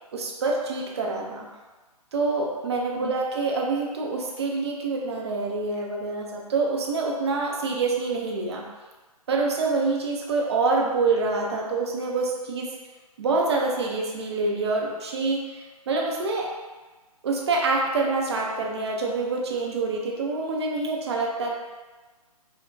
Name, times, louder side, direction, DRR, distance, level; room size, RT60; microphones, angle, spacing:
voice 1, 0.1-1.5 2.1-8.7 9.3-12.7 13.2-16.5 17.2-21.5, right 3 dB, 45° right, -1 dB, 0.6 m, -26 dB
4.5 x 2.2 x 2.2 m, 1.3 s
figure-of-eight pair, 135°, 20 cm